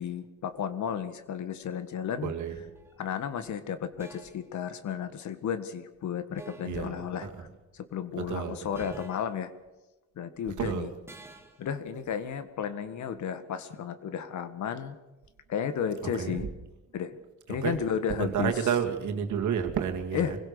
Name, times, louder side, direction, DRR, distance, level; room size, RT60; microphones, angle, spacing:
voice 1, 0.0-2.3 3.0-7.5 7.7-9.5 10.2-10.9 11.6-15.0 15.5-16.5 16.9-17.2 17.5-18.7 20.1-20.4, left 8 dB, 70° left, 11 dB, 1.8 m, -33 dB
voice 2, 2.2-2.6 6.6-6.9 7.2-7.4 8.2-8.9 10.6-10.9 16.2-16.4 17.5-17.8 18.1-20.4, right 8 dB, 75° right, 5 dB, 2.5 m, -30 dB
sound 1, 2.7-3.0 4.0-4.5 6.4-6.9 8.7-9.4 11.1-11.7, right 2 dB, 10° right, 2.2 m, -48 dB
24.5 x 16.5 x 7.0 m, 1.1 s
cardioid pair, 90°, 30 cm